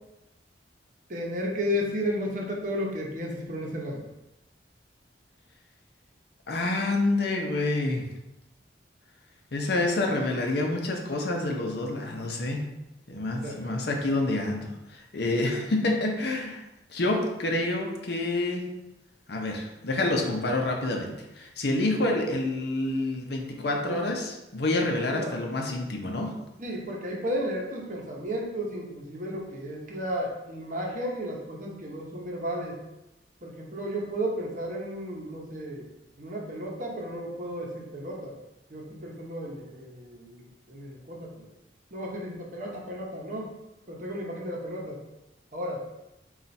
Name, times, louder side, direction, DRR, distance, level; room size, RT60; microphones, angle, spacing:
voice 1, 1.1-4.0 13.4-13.7 23.9-24.0 25.1-25.3 26.6-32.8 33.4-35.9 36.2-38.4 38.7-41.5 41.9-43.5 43.9-45.0 45.5-45.8, equal, 45° right, -1 dB, 0.8 m, -33 dB
voice 2, 6.5-8.0 9.5-12.6 13.1-16.6 16.9-18.7 19.3-26.4, left 2 dB, 60° left, 1 dB, 0.7 m, -28 dB
4.3 x 2.4 x 4.1 m, 0.95 s
head